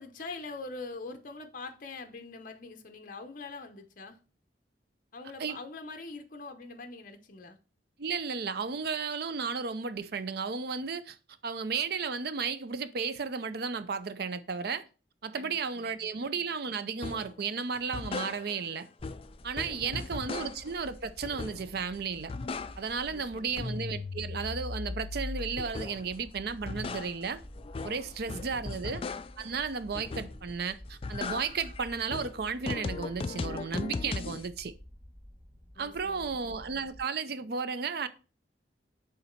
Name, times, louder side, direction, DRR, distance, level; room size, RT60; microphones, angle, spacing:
voice 1, 0.0-4.2 5.1-7.6 15.3-16.1 19.8-20.4 23.1-23.7 28.3-28.4 28.7-29.2 35.7-36.6, left 3 dB, 50° left, 0.7 m, -44 dB
voice 2, 8.0-11.2 11.4-14.8 15.2-18.9 19.4-22.3 22.8-27.4 27.8-29.0 29.4-34.7 35.8-38.1, right 5 dB, 60° right, 0.5 m, -34 dB
sound 1, 17.0-17.3 17.8-18.7 19.0-20.8 21.2-21.8 22.1-23.1 23.4-26.1 26.5-29.5 29.9-30.5 30.9-34.5, left 3 dB, 30° left, 0.3 m, -38 dB
sound 2, 19.0-37.0, equal, 30° right, 2.3 m, -51 dB
6.9 x 3.9 x 4.4 m
head